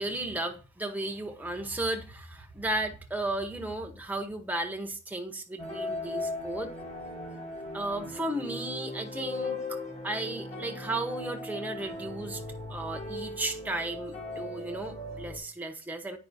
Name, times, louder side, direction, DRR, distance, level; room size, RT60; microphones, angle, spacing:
voice 1, 0.0-6.7 7.7-12.4 12.7-16.2, right 2 dB, 10° right, 0.8 m, -34 dB
sound 1, 5.6-15.4, left 2 dB, 30° left, 1.2 m, -38 dB
9.7 x 5.3 x 2.6 m
head